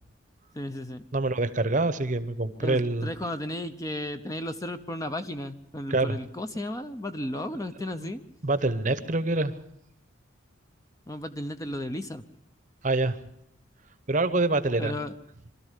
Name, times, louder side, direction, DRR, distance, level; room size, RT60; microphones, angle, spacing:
voice 1, 0.5-1.1 2.6-8.2 11.1-12.2 14.8-15.1, left 1 dB, 15° left, 9 dB, 0.7 m, -34 dB
voice 2, 1.1-3.1 5.9-6.2 8.0-8.1 8.4-9.5 12.8-13.2 14.1-15.0, right 2 dB, 40° right, 13 dB, 0.9 m, -25 dB
24.0 x 13.5 x 8.2 m, 0.78 s
head